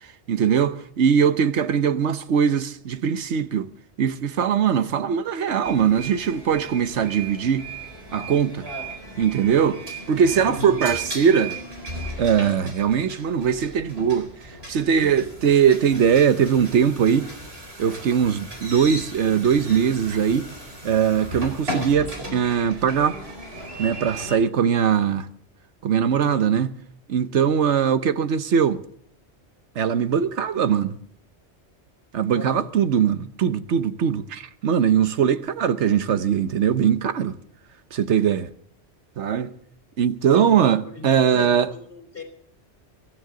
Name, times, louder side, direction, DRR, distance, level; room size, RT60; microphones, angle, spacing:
voice 1, 0.3-3.7 4.0-7.7 8.1-8.7 9.2-9.8 10.1-11.6 12.2-14.3 14.7-17.3 17.8-20.5 20.8-23.2 23.8-25.3 25.8-26.7 27.1-28.8 29.8-30.9 32.1-37.3 37.9-38.5 39.2-39.5 40.0-41.7, right 7 dB, 80° right, 1.2 m, -21 dB
sound 1, 5.6-24.4, right 2 dB, 60° right, 4.4 m, -36 dB
voice 2, 10.4-10.8 26.1-26.5 32.3-32.7 40.3-40.5 40.8-42.2, left 4 dB, 55° left, 4.3 m, -36 dB
23.5 x 15.0 x 3.8 m
omnidirectional pair, 1.2 m